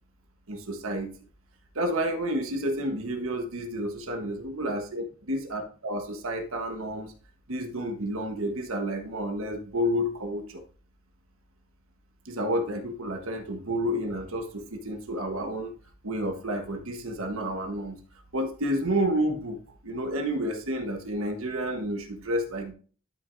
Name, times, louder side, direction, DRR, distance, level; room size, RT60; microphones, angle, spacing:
voice 1, 0.5-1.1 1.7-5.0 5.3-7.1 7.5-10.6 12.2-15.7 16.0-17.9 18.3-22.7, equal, 75° right, 4 dB, 1.3 m, -30 dB
12.0 x 5.9 x 2.6 m, 0.40 s
head